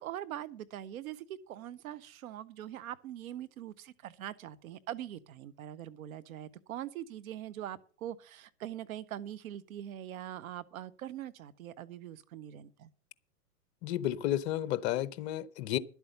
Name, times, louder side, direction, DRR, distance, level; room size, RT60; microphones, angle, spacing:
voice 1, 0.0-12.9, right 11 dB, 60° right, 1.0 m, -42 dB
voice 2, 13.8-15.8, left 13 dB, 45° left, 0.8 m, -32 dB
11.0 x 8.2 x 6.6 m
hypercardioid pair, 120°, 47 cm